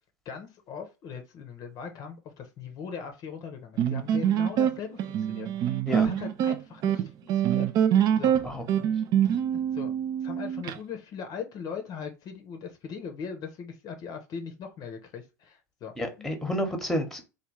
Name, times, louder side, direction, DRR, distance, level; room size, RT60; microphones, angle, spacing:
voice 1, 0.2-7.7 8.2-8.3 9.5-9.9 10.2-16.4, left 6 dB, 40° left, 0.6 m, -40 dB
sound 1, 3.8-10.8, right 9 dB, 40° right, 0.4 m, -25 dB
voice 2, 8.4-8.9 16.0-17.3, equal, 5° left, 0.9 m, -30 dB
3.3 x 2.3 x 3.1 m
figure-of-eight pair, 80°, 9 cm